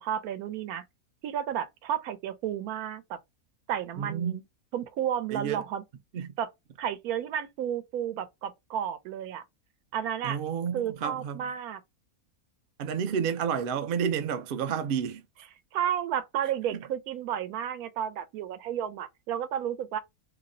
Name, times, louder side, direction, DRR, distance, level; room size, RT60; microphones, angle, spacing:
voice 1, 0.0-0.8 1.2-3.2 3.7-4.4 4.7-5.8 6.4-6.5 6.8-9.4 9.9-10.4 10.7-11.8 15.7-20.0, right 9 dB, 90° right, 1.1 m, -32 dB
voice 2, 4.0-4.4 5.3-5.6 6.1-6.3 10.2-11.5 12.8-15.2 16.7-16.8, right 7 dB, 70° right, 0.5 m, -30 dB
2.8 x 2.1 x 3.6 m
omnidirectional pair, 1.5 m